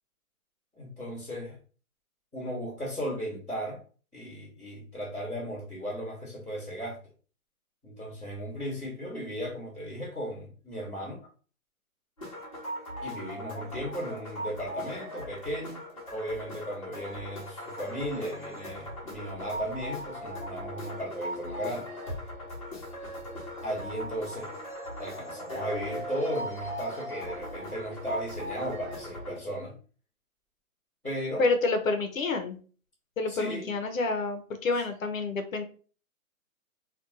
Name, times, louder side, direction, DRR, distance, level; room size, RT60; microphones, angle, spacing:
voice 1, 0.8-1.6 2.3-3.8 4.1-7.0 7.8-11.2 13.0-15.8 16.1-21.9 23.6-24.5 25.0-29.7 31.0-31.4 33.3-33.7, equal, 5° right, -17 dB, 0.9 m, -36 dB
sound 1, 12.2-29.4, equal, 25° left, 0.8 m, -39 dB
voice 2, 31.4-32.6 33.2-35.6, left 3 dB, 65° left, 7 dB, 0.6 m, -28 dB
2.5 x 2.2 x 3.8 m, 0.39 s
hypercardioid pair, 175°, 43 cm